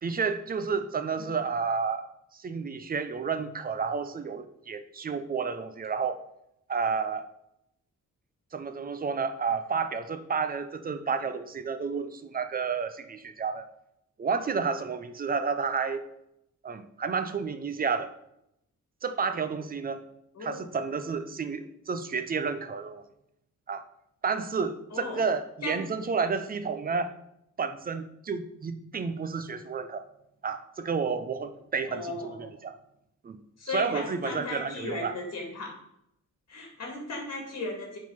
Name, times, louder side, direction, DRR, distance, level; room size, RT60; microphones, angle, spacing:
voice 1, 0.0-6.2 6.7-7.3 8.5-13.7 14.2-16.0 16.6-18.1 19.0-20.0 20.4-23.0 23.7-23.8 24.2-27.1 27.6-30.1 30.4-32.8 33.2-33.4 33.7-35.1, right 5 dB, 30° right, 10 dB, 0.4 m, -31 dB
voice 2, 24.9-25.3 25.6-25.8 31.9-32.5 33.6-35.7 36.5-38.0, left 2 dB, 50° left, 1 dB, 2.2 m, -36 dB
7.5 x 3.8 x 5.5 m, 0.79 s
wide cardioid pair, 170°, 33 cm